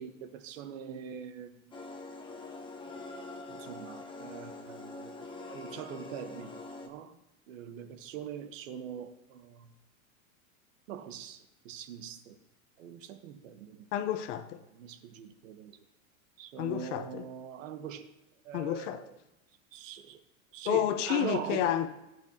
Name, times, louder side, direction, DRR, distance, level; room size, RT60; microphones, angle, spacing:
voice 1, 0.0-1.8 3.5-7.2 7.5-9.7 10.9-12.4 12.8-13.8 14.7-15.8 16.4-18.1 18.4-19.1 19.7-20.2 20.5-21.9, right 9 dB, 65° right, 1.4 m, -42 dB
sound 1, 1.7-6.9, left 3 dB, 10° left, 1.1 m, -44 dB
voice 2, 13.9-14.6 16.6-17.3 18.5-19.1 20.6-21.9, left 11 dB, 60° left, 1.2 m, -30 dB
18.5 x 8.8 x 2.9 m
supercardioid pair, 130°, 41 cm